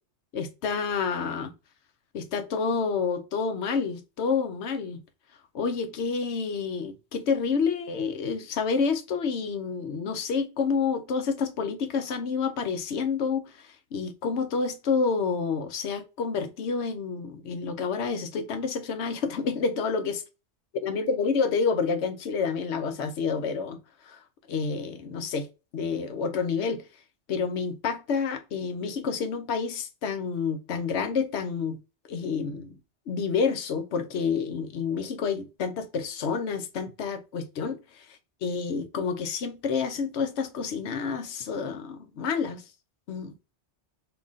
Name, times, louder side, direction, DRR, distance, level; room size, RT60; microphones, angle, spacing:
voice 1, 0.3-1.5 2.1-5.0 5.5-20.2 20.8-23.8 24.0-24.2 24.5-25.5 25.7-26.8 27.3-31.8 32.1-32.7 33.1-38.0 38.4-42.6 43.1-43.3, left 5 dB, 75° left, 1.0 m, -29 dB
3.6 x 2.9 x 3.9 m
omnidirectional pair, 1.2 m